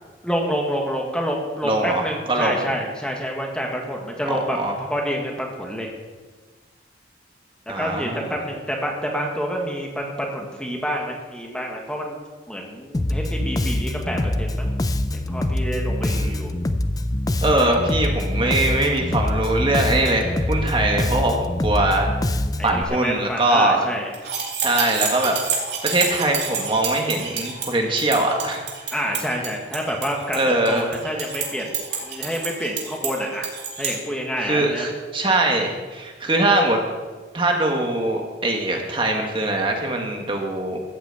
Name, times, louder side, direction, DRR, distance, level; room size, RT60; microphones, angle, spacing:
voice 1, 0.2-5.9 7.8-12.2 12.5-14.7 15.1-16.5 22.6-24.1 28.9-31.7 32.0-33.5 33.8-34.9, equal, 5° left, 0 dB, 1.4 m, -28 dB
voice 2, 1.6-2.0 2.3-2.7 4.3-4.7 7.7-8.4 16.0-16.4 17.4-22.1 22.6-23.8 24.6-28.6 30.3-30.9 34.4-36.8 37.3-40.8, right 2 dB, 30° right, 1 dB, 1.6 m, -22 dB
Bass guitar, 12.9-22.8, left 1 dB, 20° left, 0.5 m, -24 dB
sound 1, 24.1-33.9, right 6 dB, 65° right, 2.8 m, -29 dB
14.0 x 6.2 x 8.0 m, 1.4 s
head